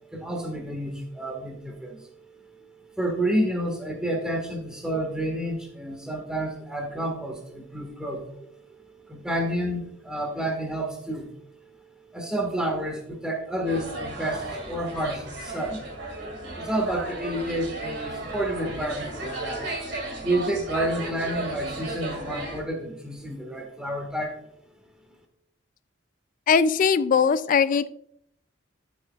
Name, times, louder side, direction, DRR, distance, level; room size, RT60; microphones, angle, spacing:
voice 1, 0.1-2.0 3.0-8.5 9.1-11.3 12.1-15.8 16.6-19.7 20.2-24.4, right 1 dB, 5° right, 1 dB, 1.6 m, -29 dB
sound 1, 13.6-22.6, right 2 dB, 60° right, 2.3 m, -35 dB
voice 2, 26.5-27.9, left 6 dB, 45° left, 16 dB, 0.3 m, -20 dB
12.5 x 6.4 x 2.4 m, 0.71 s
head